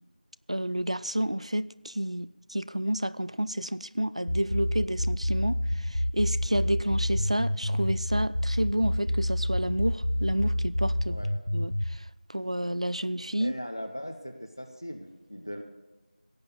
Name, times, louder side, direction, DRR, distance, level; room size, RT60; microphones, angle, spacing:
voice 1, 0.5-11.2 11.5-12.0 12.3-13.5, right 1 dB, 40° right, 0.3 m, -30 dB
sound 1, 4.3-12.0, equal, 65° left, 0.9 m, -28 dB
voice 2, 13.4-15.6, equal, 20° left, 0.5 m, -39 dB
17.0 x 8.1 x 6.8 m
figure-of-eight pair, 175°, 5 cm